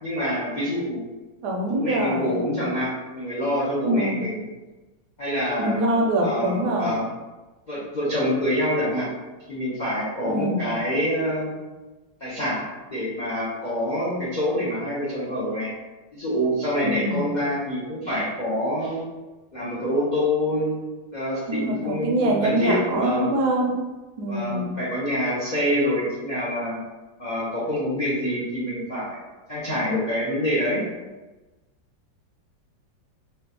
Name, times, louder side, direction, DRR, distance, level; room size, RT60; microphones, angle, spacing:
voice 1, 0.0-1.0 1.7-4.5 5.2-5.8 6.2-7.1 7.7-9.1 9.5-11.5 12.2-12.6 12.9-15.7 16.1-19.0 19.5-20.8 21.1-23.3 24.3-26.8 27.2-29.2 29.5-30.9, equal, 65° left, -9 dB, 0.4 m, -26 dB
voice 2, 1.4-2.4 3.8-4.3 5.6-6.9 10.2-10.7 16.8-17.4 21.5-23.7 24.2-24.8, right 1 dB, 75° right, 0 dB, 1.1 m, -24 dB
3.6 x 2.3 x 2.7 m, 1.2 s
omnidirectional pair, 1.9 m